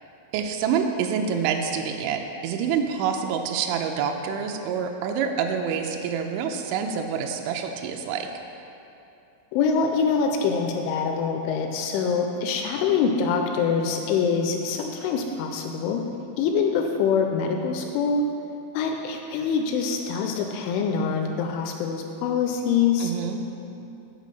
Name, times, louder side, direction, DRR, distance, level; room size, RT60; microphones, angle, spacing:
voice 1, 0.3-8.3 23.0-23.4, right 7 dB, 85° right, 3 dB, 2.8 m, -27 dB
voice 2, 9.5-16.0 16.4-18.2 18.7-23.1, left 5 dB, 85° left, 3 dB, 2.8 m, -24 dB
8.1 x 5.1 x 6.8 m, 2.9 s
omnidirectional pair, 5.8 m